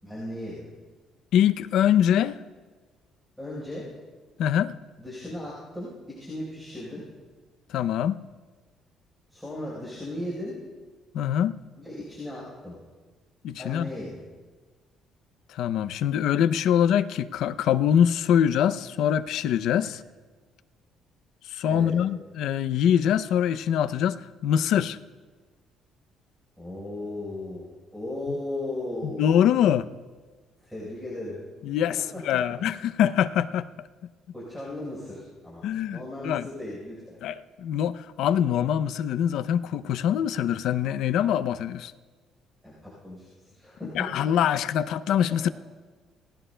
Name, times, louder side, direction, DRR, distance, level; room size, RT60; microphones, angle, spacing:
voice 1, 0.0-0.7 3.4-3.9 5.0-7.0 9.3-10.6 11.8-12.7 13.5-14.2 19.8-19.9 21.7-22.0 26.6-29.4 30.6-31.4 32.1-32.4 34.3-37.2 42.6-44.1, left 1 dB, ahead, -8 dB, 4.1 m, -36 dB
voice 2, 1.3-2.4 4.4-4.7 7.7-8.2 11.1-11.6 13.4-13.9 15.5-20.0 21.5-25.0 29.0-29.9 31.6-32.0 32.2-33.7 35.6-36.0 36.2-36.5 37.2-41.9 43.8-45.5, left 9 dB, 65° left, 13 dB, 0.5 m, -24 dB
28.0 x 18.5 x 2.2 m, 1.4 s
cardioid pair, 180°, 0 cm